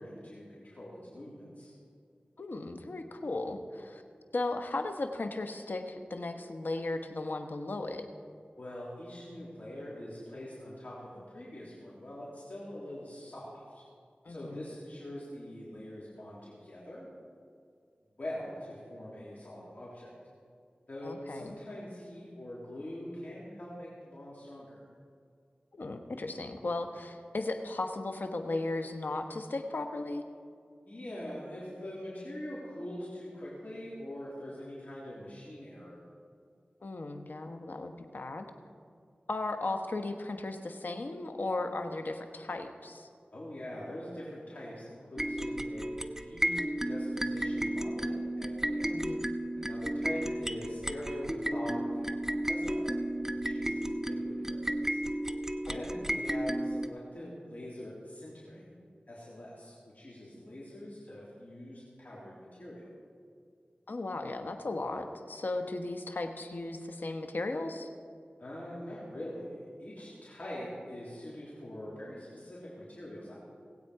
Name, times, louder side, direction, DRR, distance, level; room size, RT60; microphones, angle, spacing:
voice 1, 0.0-1.7 8.6-13.8 14.3-17.1 18.2-20.1 20.9-24.8 30.9-36.0 43.3-49.0 49.6-52.2 52.4-53.0 53.3-55.0 55.6-58.7 59.1-62.9 68.4-73.3, left 1 dB, 50° left, -7 dB, 3.1 m, -43 dB
voice 2, 2.4-4.0 4.3-8.0 14.2-14.6 21.0-21.5 25.7-30.2 36.8-38.5 39.3-43.1 48.9-49.3 55.7-55.8 63.9-67.9, left 2 dB, 70° left, 6 dB, 1.1 m, -36 dB
sound 1, 45.2-56.9, right 1 dB, 15° right, 0.6 m, -33 dB
19.0 x 8.5 x 4.8 m, 2.3 s
wide cardioid pair, 45°, 3 cm